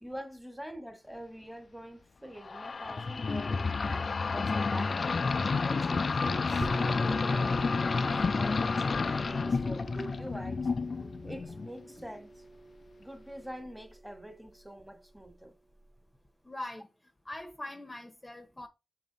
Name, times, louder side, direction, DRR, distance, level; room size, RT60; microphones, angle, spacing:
voice 1, 0.0-5.0 5.6-7.5 8.0-10.7 11.2-12.4 13.0-15.5, right 1 dB, 5° right, 1.6 m, -45 dB
sound 1, 2.4-11.8, left 4 dB, 45° left, 0.4 m, -30 dB
sound 2, 6.6-16.0, right 2 dB, 25° right, 0.5 m, -45 dB
voice 2, 16.4-16.9 17.2-18.7, left 1 dB, 20° left, 1.0 m, -42 dB
6.7 x 3.6 x 4.0 m
wide cardioid pair, 95°, 0 cm